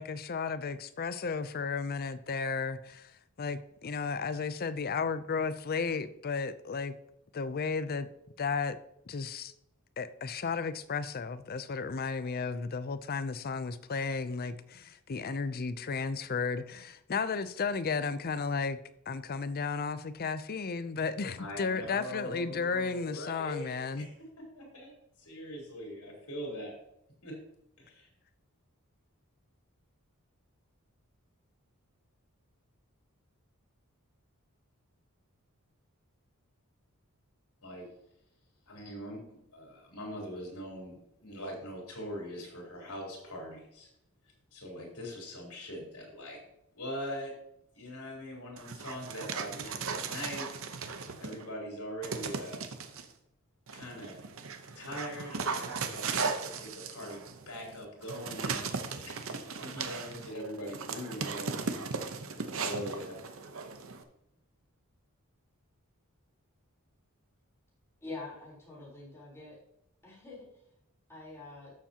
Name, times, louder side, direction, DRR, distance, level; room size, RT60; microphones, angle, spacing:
voice 1, 0.0-3.1 3.4-7.0 7.3-8.1 8.4-8.8 9.1-9.5 10.0-18.8 19.1-24.1, left 5 dB, 45° left, 13 dB, 0.5 m, -34 dB
voice 2, 21.4-24.9 25.2-26.7 27.2-27.4 27.8-28.1 37.6-37.9 38.7-43.9 44.5-46.4 46.8-47.3 47.7-50.5 50.9-52.6 53.7-54.3 54.8-58.8 59.0-61.6 62.6-63.2, equal, 80° left, -1 dB, 3.9 m, -42 dB
Dog, 48.6-51.5 52.0-53.0 53.7-64.0, right 5 dB, 65° right, 0.8 m, -37 dB
voice 3, 68.0-69.6 70.0-70.4 71.1-71.7, left 3 dB, 10° left, -6 dB, 3.9 m, -45 dB
13.0 x 7.1 x 2.9 m, 0.79 s
head